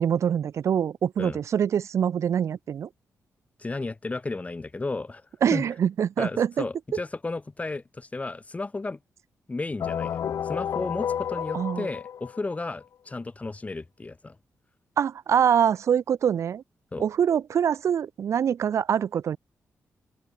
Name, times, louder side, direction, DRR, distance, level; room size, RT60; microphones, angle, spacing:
voice 1, 0.0-2.9 5.4-6.6 11.5-11.9 15.0-16.6 17.0-19.4, right 8 dB, 60° right, 0.4 m, -24 dB
voice 2, 3.6-5.7 6.2-9.0 9.5-14.4 16.9-17.0, left 3 dB, 25° left, 2.3 m, -33 dB
sound 1, 9.8-12.7, left 8 dB, 75° left, 1.7 m, -31 dB
open air
cardioid pair, 90°, 6 cm